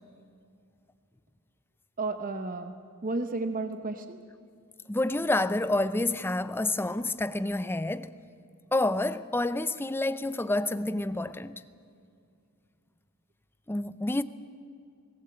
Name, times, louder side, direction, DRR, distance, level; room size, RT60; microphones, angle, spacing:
voice 1, 2.0-2.7 3.0-4.2, right 3 dB, 40° right, 0.9 m, -32 dB
voice 2, 4.9-8.1 8.7-11.6 13.7-14.2, left 2 dB, 10° left, 0.5 m, -28 dB
19.5 x 18.0 x 7.9 m
head